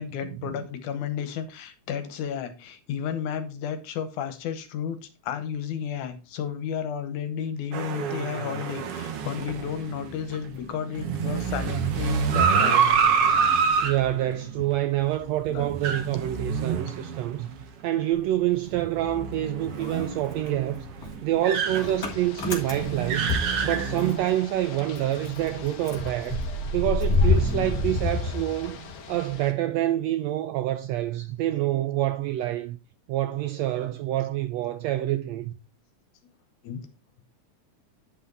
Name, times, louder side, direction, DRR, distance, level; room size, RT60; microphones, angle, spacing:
voice 1, 0.0-12.8 13.2-13.9 15.5-15.8 36.6-36.8, left 8 dB, 80° left, 2.4 m, -33 dB
sound 1, 7.7-17.6 18.0-18.1 18.7-24.2, right 6 dB, 60° right, 1.9 m, -27 dB
voice 2, 13.8-17.5 17.8-23.3 23.6-26.4 26.7-32.8 33.1-35.5, right 13 dB, 80° right, 1.5 m, -27 dB
Motor vehicle (road) / Engine starting, 18.1-19.4 19.6-24.3 24.6-24.7 25.0-29.1, left 3 dB, 35° left, 1.7 m, -28 dB
Ocean / Boat Water vehicle, 21.7-29.5, left 6 dB, 60° left, 1.5 m, -43 dB
9.9 x 5.6 x 3.9 m
omnidirectional pair, 3.5 m